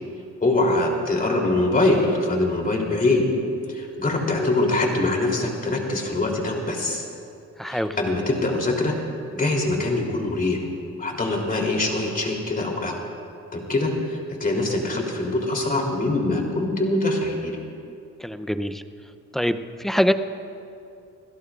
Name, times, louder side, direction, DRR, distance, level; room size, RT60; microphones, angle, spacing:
voice 1, 0.4-3.2 3.7-7.0 7.6-8.9 9.3-10.6 11.0-13.0 13.5-17.6, left 2 dB, 30° left, 0 dB, 3.3 m, -23 dB
voice 2, 7.6-8.0 18.2-18.8 19.3-20.1, equal, ahead, 9 dB, 0.6 m, -24 dB
26.0 x 17.0 x 2.5 m, 2.6 s
cardioid pair, 90°, 30 cm